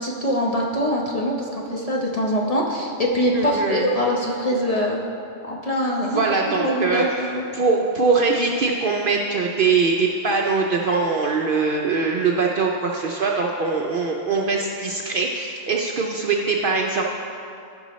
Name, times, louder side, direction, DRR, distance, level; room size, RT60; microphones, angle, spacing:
voice 1, 0.0-5.0 5.4-6.2 6.6-7.4, equal, 35° left, -2 dB, 0.8 m, -23 dB
voice 2, 3.3-3.9 6.0-7.0 7.5-17.1, right 4 dB, 60° right, 0 dB, 0.6 m, -22 dB
14.0 x 5.4 x 3.1 m, 2.5 s
omnidirectional pair, 1.3 m